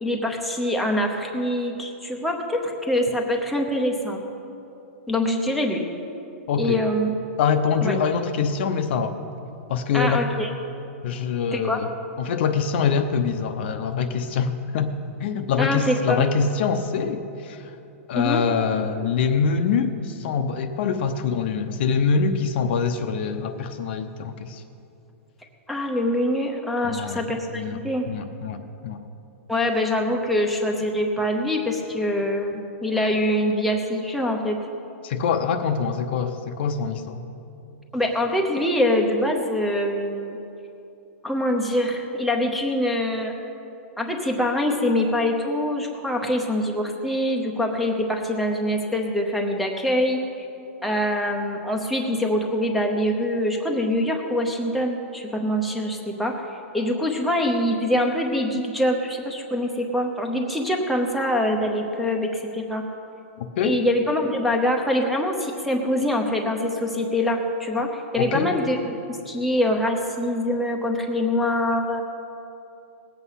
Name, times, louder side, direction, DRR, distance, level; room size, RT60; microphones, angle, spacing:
voice 1, 0.0-4.2 5.1-5.9 6.6-7.1 7.8-8.0 9.9-10.5 11.5-11.8 15.6-16.2 18.1-18.4 25.7-28.1 29.5-34.6 37.9-40.4 41.2-43.4 44.0-50.2 50.8-56.4 56.7-62.9 63.6-72.0, left 1 dB, ahead, -1 dB, 0.8 m, -24 dB
voice 2, 6.5-6.8 7.4-9.2 9.7-10.3 11.0-11.9 12.2-14.9 15.2-17.7 18.1-24.6 26.8-27.2 27.5-27.8 28.1-29.0 35.0-37.2 63.4-63.8 68.2-68.5, left 6 dB, 50° left, 8 dB, 0.8 m, -24 dB
19.0 x 8.1 x 5.7 m, 2.8 s
hypercardioid pair, 165°, 8 cm